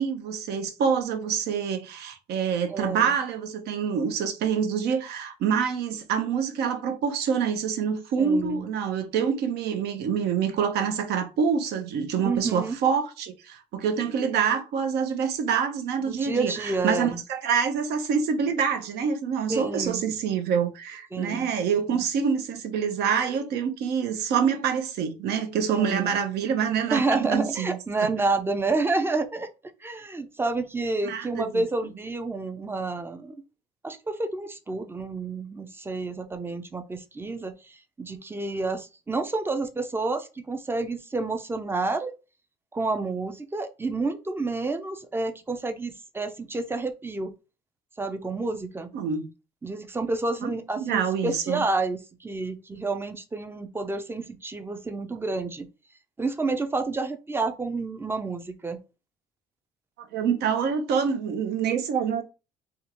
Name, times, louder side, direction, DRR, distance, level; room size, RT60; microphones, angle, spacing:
voice 1, 0.0-28.1 31.0-31.6 48.9-49.3 50.4-50.5 50.8-51.6 60.1-62.2, right 7 dB, 75° right, 0.7 m, -26 dB
voice 2, 2.7-3.2 8.2-8.7 12.2-12.8 16.0-17.2 19.5-20.1 21.1-21.5 21.9-22.0 25.7-26.2 26.9-29.5 29.8-33.3 33.8-42.1 42.7-47.3 48.0-48.9 49.6-55.7 56.2-58.8, right 3 dB, 15° right, 0.4 m, -29 dB
3.5 x 2.4 x 2.9 m
cardioid pair, 110°, 17 cm